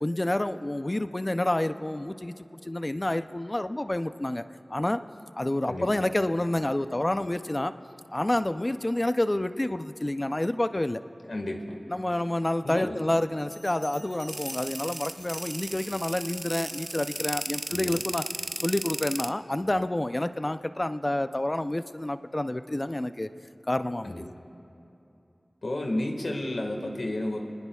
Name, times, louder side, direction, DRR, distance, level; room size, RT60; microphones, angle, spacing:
voice 1, 0.0-4.4 4.7-5.0 5.4-7.7 8.1-11.0 11.9-18.2 18.6-23.3 23.7-24.3, left 1 dB, 30° left, 10 dB, 0.5 m, -28 dB
voice 2, 11.3-11.8 12.6-13.0 17.7-17.9 24.0-24.2 25.6-27.4, left 1 dB, 90° left, 2 dB, 1.6 m, -31 dB
Bell, 13.4-16.1 16.6-17.0 17.4-18.1, right 1 dB, 70° right, 2.7 m, -48 dB
sound 1, 14.3-19.3, right 1 dB, 35° right, 0.4 m, -35 dB
28.0 x 20.0 x 2.4 m, 2.8 s
wide cardioid pair, 60°, 0 cm